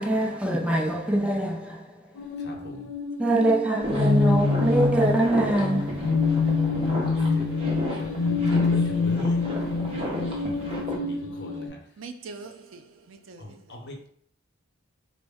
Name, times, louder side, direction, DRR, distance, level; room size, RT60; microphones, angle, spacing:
voice 1, 0.0-1.9 3.2-6.1, right 1 dB, 5° right, 0.4 m, -24 dB
sound 1, 2.2-11.7, left 3 dB, 75° left, 0.5 m, -26 dB
voice 2, 2.4-2.9 6.3-7.7 8.0-9.8 10.9-11.8 13.4-14.1, left 1 dB, 60° left, 0.8 m, -42 dB
sound 2, 3.8-10.9, equal, 30° right, 0.8 m, -34 dB
voice 3, 12.0-13.8, right 4 dB, 70° right, 0.5 m, -43 dB
4.1 x 2.1 x 3.4 m
head